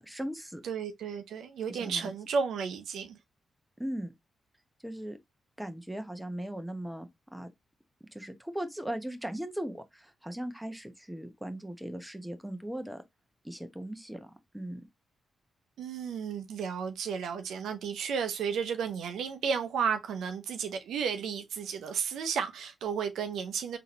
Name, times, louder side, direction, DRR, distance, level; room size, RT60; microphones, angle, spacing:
voice 1, 0.0-0.6 1.7-2.1 3.8-4.1 4.8-5.2 5.6-7.5 8.1-13.0 13.4-14.8, right 1 dB, 5° right, 0.9 m, -38 dB
voice 2, 0.6-3.2 15.8-23.8, right 6 dB, 80° right, 0.6 m, -33 dB
3.7 x 2.8 x 3.0 m
supercardioid pair, 45°, 0 cm